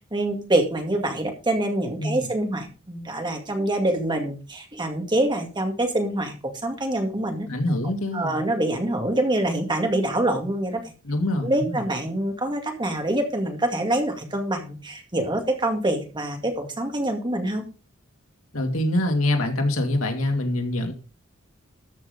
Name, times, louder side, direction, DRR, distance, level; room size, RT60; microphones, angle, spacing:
voice 1, 0.1-6.3 6.6-7.5 8.1-10.8 11.4-17.6, right 1 dB, 20° right, 4 dB, 2.2 m, -25 dB
voice 2, 7.5-8.4 11.0-11.8 18.5-20.9, left 1 dB, 75° left, 4 dB, 2.5 m, -25 dB
13.5 x 6.1 x 5.3 m, 0.34 s
head